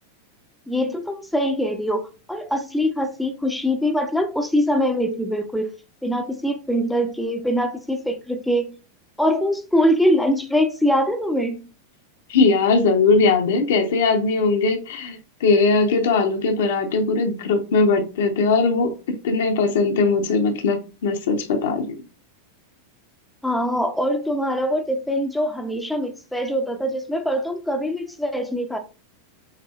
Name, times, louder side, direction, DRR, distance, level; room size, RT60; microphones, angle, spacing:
voice 1, 0.7-5.7 6.0-8.8 9.2-11.7 23.4-28.8, equal, ahead, 0.6 m, -23 dB
voice 2, 12.3-22.0, left 4 dB, 55° left, 0.8 m, -20 dB
6.6 x 2.7 x 2.4 m
figure-of-eight pair, 90°, 0 cm